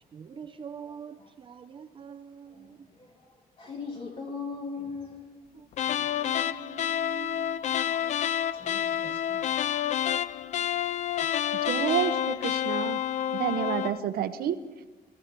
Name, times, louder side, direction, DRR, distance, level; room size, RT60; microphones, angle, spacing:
voice 1, 0.1-2.9 5.5-5.7 6.0-7.8 8.6-9.2 11.2-11.3, right 7 dB, 35° right, 9 dB, 0.6 m, -45 dB
voice 2, 3.6-5.4 5.9-6.0 8.5-9.4, left 4 dB, 35° left, 1 dB, 2.6 m, -39 dB
sound 1, 5.7-14.0, left 10 dB, 50° left, 0.4 m, -29 dB
voice 3, 11.7-13.0 13.3-14.6, right 10 dB, 80° right, 10 dB, 0.8 m, -29 dB
23.0 x 14.0 x 4.5 m, 1.3 s
cardioid pair, 170°, 16 cm